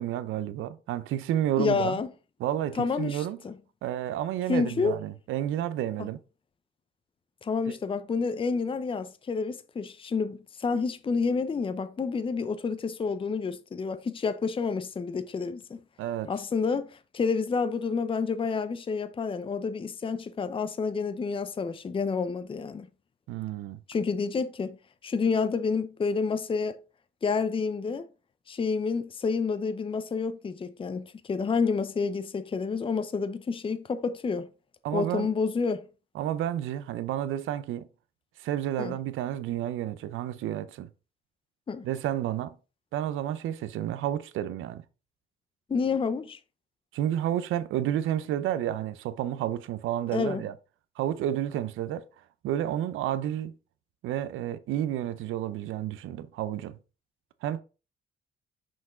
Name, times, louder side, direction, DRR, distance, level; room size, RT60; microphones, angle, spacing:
voice 1, 0.0-2.0 2.4-3.4 3.8-6.2 7.7-7.8 16.0-16.3 23.3-23.8 34.8-35.3 36.1-37.9 38.4-40.9 41.8-42.6 42.9-44.8 46.9-50.5 51.0-52.1 52.4-53.5 54.0-56.8 57.4-57.6, right 11 dB, 85° right, 0.6 m, -30 dB
voice 2, 1.6-2.1 2.7-3.5 4.5-5.0 6.0-6.1 7.4-15.8 16.3-22.9 23.9-24.8 25.0-26.8 27.2-28.1 28.5-34.5 34.9-35.8 38.8-39.0 41.7-41.9 45.7-46.4 50.1-50.4, left 5 dB, 25° left, 0.6 m, -29 dB
5.9 x 5.0 x 3.7 m
cardioid pair, 90°, 20 cm